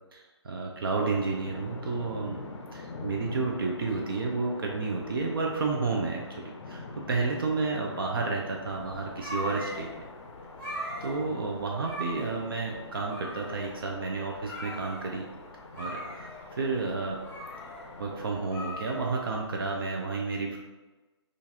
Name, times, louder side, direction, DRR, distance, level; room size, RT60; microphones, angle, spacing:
voice 1, 0.1-2.4 2.7-10.1 11.0-15.3 15.8-17.2 18.0-20.6, right 3 dB, 50° right, 0 dB, 0.5 m, -31 dB
sound 1, 0.9-18.5, left 3 dB, 85° left, 0.5 m, -45 dB
sound 2, 8.7-19.7, equal, 10° left, 0.4 m, -41 dB
3.8 x 2.4 x 2.8 m, 1.2 s
hypercardioid pair, 160°, 15 cm